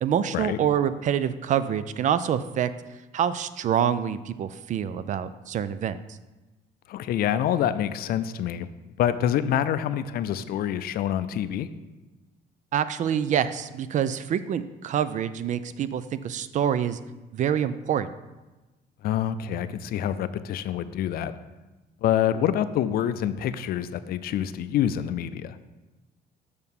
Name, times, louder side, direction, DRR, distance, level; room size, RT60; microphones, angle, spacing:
voice 1, 0.0-2.7 3.1-6.0 12.7-17.0 17.3-18.1, right 9 dB, 45° right, 14 dB, 0.4 m, -26 dB
voice 2, 6.9-8.7 9.0-11.7 19.0-21.3 22.0-25.6, left 10 dB, 65° left, 13 dB, 0.4 m, -26 dB
6.6 x 4.6 x 5.3 m, 1.1 s
cardioid pair, 110°, 17 cm